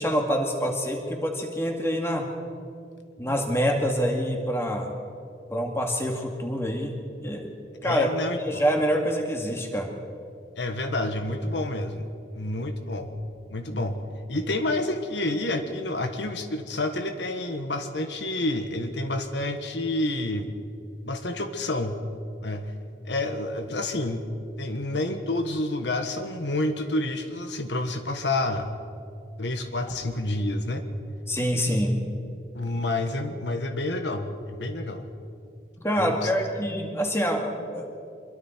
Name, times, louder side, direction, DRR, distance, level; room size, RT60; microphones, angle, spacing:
voice 1, 0.0-2.3 3.2-4.9 5.5-6.9 7.2-7.5 7.8-8.1 8.4-9.9 31.3-32.0 35.8-37.9, equal, 15° left, 1 dB, 2.3 m, -26 dB
voice 2, 7.8-8.6 10.6-12.1 12.3-13.1 13.5-14.0 14.3-20.5 21.0-22.0 22.4-22.7 23.1-24.3 24.6-28.8 29.4-30.8 32.5-35.1 36.0-36.3, left 2 dB, 85° left, 6 dB, 1.5 m, -29 dB
26.0 x 23.0 x 4.6 m, 2.4 s
head